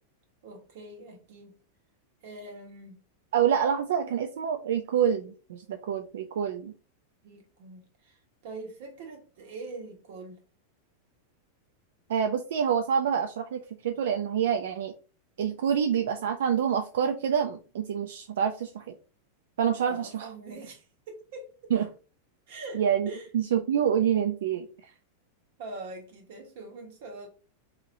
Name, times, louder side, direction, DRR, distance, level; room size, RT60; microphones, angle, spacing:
voice 1, 0.4-1.6 2.2-3.0 7.2-10.4 19.8-21.7 22.5-23.3 25.6-27.3, right 3 dB, 55° right, 1.2 m, -43 dB
voice 2, 3.3-6.7 12.1-14.9 15.4-19.0 19.6-20.3 21.7-21.9 22.7-24.9, right 8 dB, 80° right, 0.4 m, -27 dB
4.1 x 2.9 x 2.6 m
supercardioid pair, 175°, 0 cm